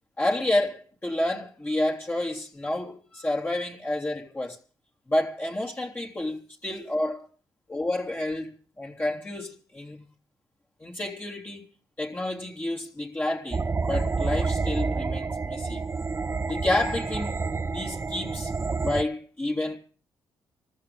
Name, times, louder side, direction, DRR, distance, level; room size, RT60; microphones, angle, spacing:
voice 1, 0.2-4.6 5.1-7.2 7.7-8.5 8.8-10.0 10.8-11.7 12.0-15.8 16.4-17.4 17.7-18.5 18.8-19.8, left 1 dB, 25° left, 3.2 m, -29 dB
sound 1, 13.5-19.0, right 4 dB, 30° right, 0.7 m, -29 dB
26.5 x 14.0 x 3.4 m
supercardioid pair, 60°, 8 cm